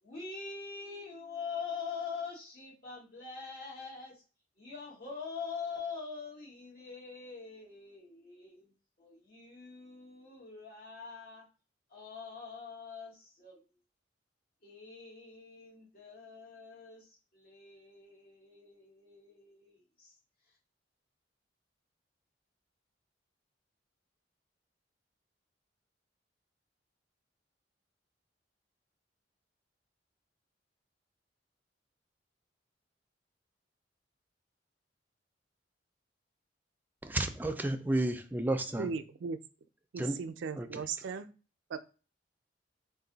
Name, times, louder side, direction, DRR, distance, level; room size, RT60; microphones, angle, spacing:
voice 1, 0.0-4.2 4.6-8.7 9.0-11.5 11.9-13.6 14.6-20.1, left 5 dB, 55° left, 2.0 m, -44 dB
voice 2, 37.0-38.9 40.0-40.2 40.6-40.8, right 1 dB, 10° right, 0.4 m, -32 dB
voice 3, 38.8-39.4 39.9-41.3 41.7-41.8, right 5 dB, 85° right, 0.4 m, -37 dB
3.9 x 2.5 x 3.9 m
head